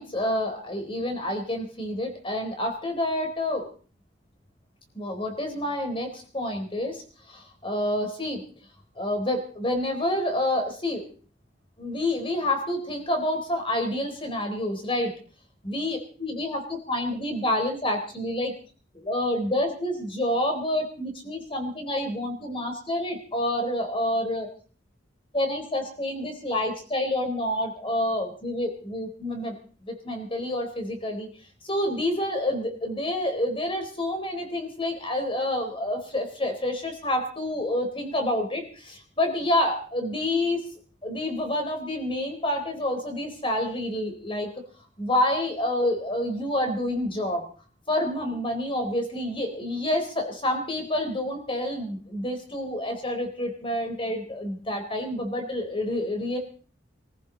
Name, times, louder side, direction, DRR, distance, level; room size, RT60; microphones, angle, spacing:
voice 1, 0.0-3.6 4.9-8.4 9.0-11.0 11.8-15.1 15.6-18.5 18.9-24.5 25.3-29.6 29.8-31.3 31.6-40.6 41.0-44.5 45.0-47.5 47.9-56.4, left 1 dB, 30° left, 5 dB, 4.0 m, -28 dB
24.5 x 14.5 x 4.0 m, 0.41 s
head